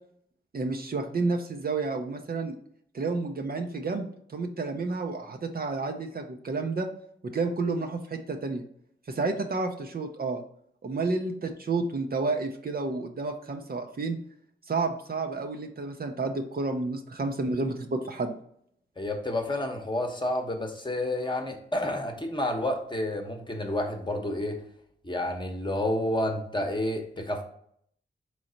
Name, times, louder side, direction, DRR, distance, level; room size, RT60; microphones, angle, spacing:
voice 1, 0.5-2.5 2.9-6.9 7.2-8.6 9.1-10.4 10.8-14.2 14.7-18.3, right 3 dB, 45° right, 4 dB, 0.6 m, -30 dB
voice 2, 19.0-24.6 25.0-27.4, left 1 dB, 20° left, 3 dB, 0.9 m, -30 dB
3.9 x 3.2 x 3.9 m, 0.67 s
cardioid pair, 55°, 21 cm